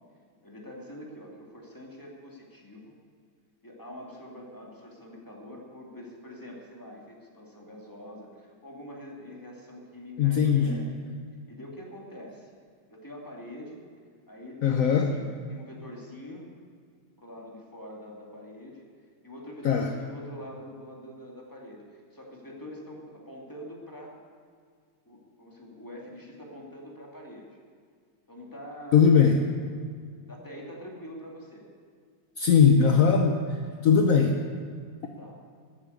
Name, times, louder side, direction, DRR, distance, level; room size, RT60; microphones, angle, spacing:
voice 1, 0.4-2.9 3.6-11.0 11.5-12.5 12.9-13.8 14.3-16.5 17.2-18.8 19.2-24.2 25.1-27.5 28.3-29.0 30.3-31.7 35.2-35.4, equal, 10° left, -2 dB, 2.3 m, -44 dB
voice 2, 10.2-10.8 14.6-15.1 19.6-19.9 28.9-29.4 32.4-34.4, left 6 dB, 60° left, 4 dB, 0.9 m, -20 dB
13.0 x 8.7 x 8.4 m, 2.1 s
omnidirectional pair, 2.3 m